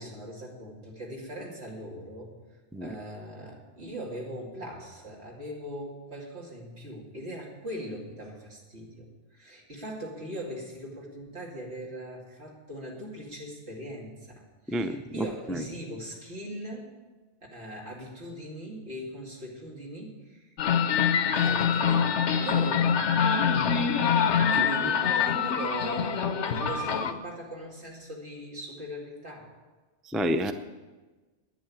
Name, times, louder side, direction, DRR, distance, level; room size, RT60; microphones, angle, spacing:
voice 1, 0.0-2.3 2.8-16.9 17.5-20.5 21.3-22.1 22.4-23.2 24.5-29.5, right 1 dB, 65° right, -2 dB, 3.0 m, -40 dB
voice 2, 14.7-15.6 30.1-30.5, equal, ahead, 8 dB, 0.3 m, -29 dB
sound 1, 20.6-27.1, left 7 dB, 75° left, 1.1 m, -25 dB
11.0 x 9.4 x 8.7 m, 1.3 s
omnidirectional pair, 1.2 m